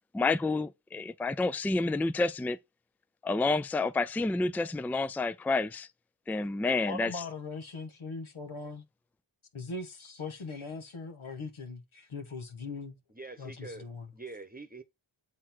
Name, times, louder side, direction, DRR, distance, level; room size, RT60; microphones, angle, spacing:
voice 1, 0.1-2.6 3.2-5.9 6.3-7.1, left 3 dB, 5° left, 0.4 m, -29 dB
voice 2, 6.8-8.8 9.5-13.0 13.4-14.1, left 3 dB, 80° left, 1.6 m, -40 dB
voice 3, 13.1-13.9 14.1-14.8, right 3 dB, 20° right, 1.0 m, -44 dB
7.6 x 4.2 x 4.4 m
wide cardioid pair, 45°, 48 cm